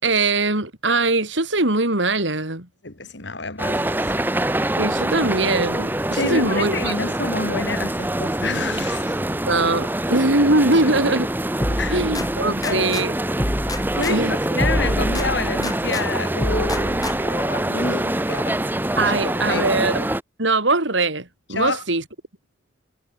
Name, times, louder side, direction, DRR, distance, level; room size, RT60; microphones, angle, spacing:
voice 1, 0.0-2.7 4.8-6.9 9.5-11.3 11.7-13.1 14.1-14.3 19.0-20.0 20.4-22.0, right 2 dB, 85° right, 5.1 m, -21 dB
voice 2, 2.8-4.1 6.1-9.2 11.8-12.0 12.6-13.0 13.9-18.7 19.2-19.7 21.5-21.8, left 3 dB, 75° left, 2.8 m, -28 dB
sound 1, 3.6-20.2, right 1 dB, 10° right, 0.9 m, -25 dB
sound 2, 11.6-13.1 13.4-16.1 16.4-17.4, left 1 dB, 20° left, 2.8 m, -27 dB
head